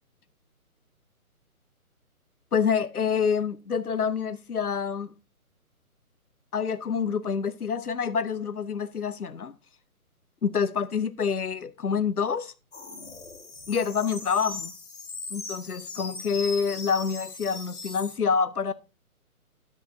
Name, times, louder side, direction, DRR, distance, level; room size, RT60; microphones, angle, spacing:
voice 1, 2.5-5.1 6.5-9.5 10.4-12.5 13.7-14.7 15.3-18.7, left 6 dB, 80° left, 0.7 m, -27 dB
sound 1, 12.7-18.2, left 3 dB, 55° left, 2.2 m, -39 dB
10.0 x 8.4 x 2.6 m
figure-of-eight pair, 140°, 44 cm